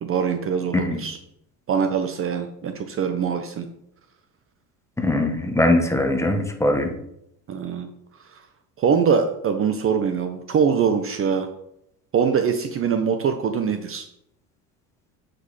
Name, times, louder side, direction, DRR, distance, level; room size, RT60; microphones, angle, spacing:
voice 1, 0.0-1.2 1.7-3.7 7.5-7.9 8.3-8.4 8.8-11.5 12.1-14.1, right 6 dB, 35° right, 7 dB, 0.7 m, -23 dB
voice 2, 5.0-6.9, left 1 dB, 5° left, 4 dB, 1.0 m, -21 dB
8.0 x 5.3 x 4.2 m, 0.78 s
cardioid pair, 120°, 40 cm